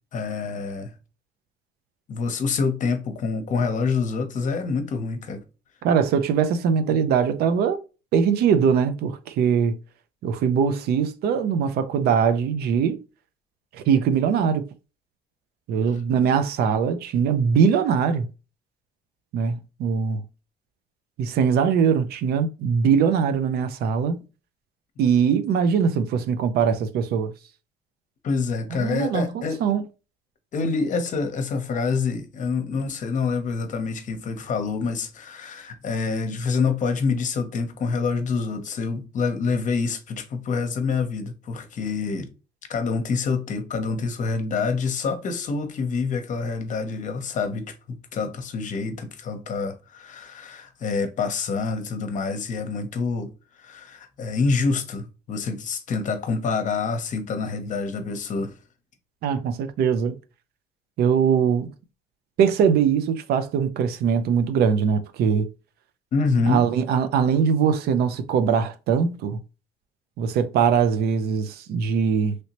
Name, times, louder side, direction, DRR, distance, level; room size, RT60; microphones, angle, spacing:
voice 1, 0.1-0.9 2.1-5.4 24.1-24.2 28.2-29.6 30.5-42.3 42.7-47.7 48.1-53.3 53.6-58.5 66.1-66.6, left 4 dB, 50° left, 0.7 m, -26 dB
voice 2, 5.8-7.8 8.1-9.8 10.2-13.0 13.7-14.6 15.7-18.3 19.3-20.2 21.2-24.2 25.0-27.3 28.7-29.8 59.2-60.2 61.0-61.7 62.4-65.5 66.5-69.4 70.2-72.4, right 7 dB, 70° right, 0.5 m, -21 dB
3.1 x 2.8 x 2.9 m
cardioid pair, 110°, 17 cm